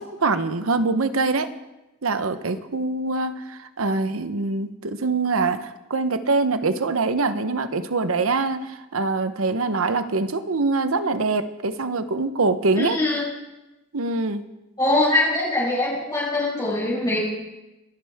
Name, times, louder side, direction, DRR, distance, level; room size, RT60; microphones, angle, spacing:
voice 1, 0.0-1.5 2.0-13.0 13.9-14.4, right 3 dB, 85° right, 11 dB, 0.9 m, -24 dB
voice 2, 12.8-13.2 14.8-17.2, left 2 dB, 20° left, -8 dB, 5.3 m, -22 dB
26.0 x 11.0 x 3.6 m, 1.0 s
head